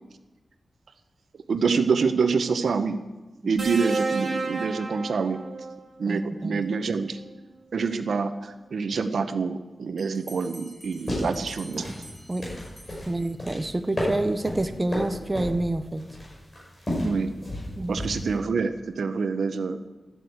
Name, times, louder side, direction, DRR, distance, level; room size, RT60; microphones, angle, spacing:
voice 1, 1.5-3.0 3.4-5.4 6.0-7.2 7.7-11.9 17.0-17.3 17.9-19.8, right 5 dB, 80° right, 9 dB, 0.8 m, -26 dB
sound 1, 3.6-5.8 7.2-7.4, right 3 dB, 50° right, 2.8 m, -31 dB
voice 2, 6.1-6.7 12.3-12.5 13.1-16.1 17.8-18.0, right 2 dB, 20° right, 9 dB, 0.7 m, -28 dB
Bell, 10.0-13.6, right 1 dB, ahead, 4.3 m, -49 dB
sound 2, 10.8-18.3, left 1 dB, 30° left, 5.7 m, -33 dB
13.0 x 9.0 x 8.0 m, 1.1 s
wide cardioid pair, 125°, 0 cm